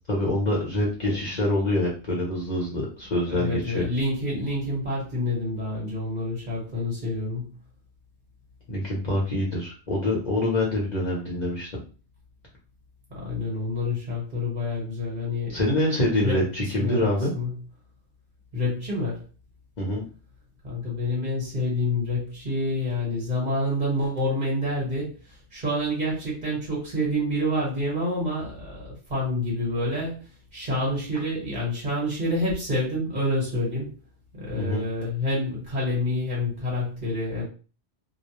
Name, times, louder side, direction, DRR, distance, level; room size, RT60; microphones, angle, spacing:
voice 1, 0.1-3.9 8.7-11.7 15.5-17.3 19.8-20.1 34.5-34.8, left 1 dB, 45° left, -4 dB, 0.7 m, -25 dB
voice 2, 3.3-7.5 13.1-15.6 16.0-16.4 16.8-17.1 17.3-17.5 18.5-19.2 20.6-25.1 25.5-30.2 30.5-33.9 34.3-37.4, left 1 dB, 40° right, -4 dB, 1.3 m, -28 dB
2.4 x 2.0 x 2.9 m, 0.35 s
omnidirectional pair, 1.1 m